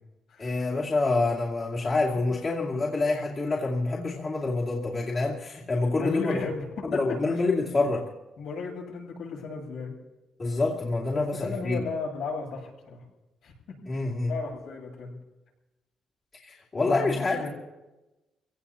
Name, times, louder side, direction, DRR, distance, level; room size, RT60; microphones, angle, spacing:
voice 1, 0.4-6.4 6.9-8.1 10.4-11.8 13.9-14.4 16.4-17.5, left 3 dB, 35° left, -4 dB, 2.4 m, -27 dB
voice 2, 6.0-7.0 7.3-7.4 8.4-9.9 11.1-13.0 13.4-13.5 13.9-14.0 14.3-15.1 16.8-17.5, left 4 dB, 85° left, -4 dB, 7.8 m, -34 dB
28.5 x 17.5 x 2.9 m, 1.0 s
cardioid pair, 90°, 0 cm